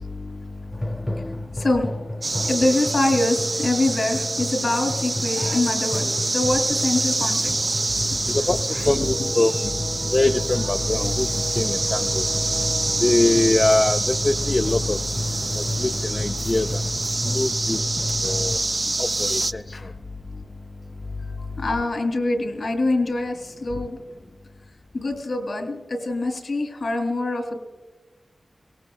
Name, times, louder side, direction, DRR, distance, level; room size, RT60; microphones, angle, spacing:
sound 1, 0.7-18.6, left 1 dB, 15° left, 0.8 m, -31 dB
voice 1, 1.5-7.8 8.7-8.9 9.2-9.3 19.7-19.9 21.6-24.0 24.9-27.6, left 2 dB, 70° left, 6 dB, 2.7 m, -25 dB
sound 2, 2.2-19.5, right 2 dB, 40° right, 0.4 m, -26 dB
voice 2, 8.3-9.7 10.1-11.3 11.5-12.3 13.0-15.0 15.6-17.8 18.2-18.6 19.0-19.6, left 2 dB, 35° left, 5 dB, 0.4 m, -23 dB
23.0 x 18.0 x 2.3 m, 1.3 s
wide cardioid pair, 70°, 0 cm